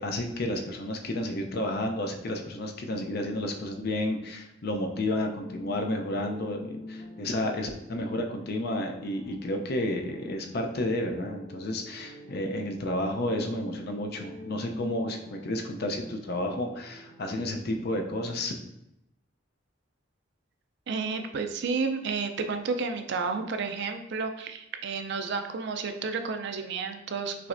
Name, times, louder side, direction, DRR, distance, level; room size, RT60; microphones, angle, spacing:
voice 1, 0.0-18.5, left 1 dB, 50° left, 3 dB, 0.5 m, -31 dB
sound 1, 5.0-18.3, left 1 dB, 80° left, 1.1 m, -46 dB
voice 2, 20.9-27.5, right 4 dB, 60° right, 6 dB, 0.4 m, -31 dB
5.8 x 3.1 x 2.5 m, 0.85 s
head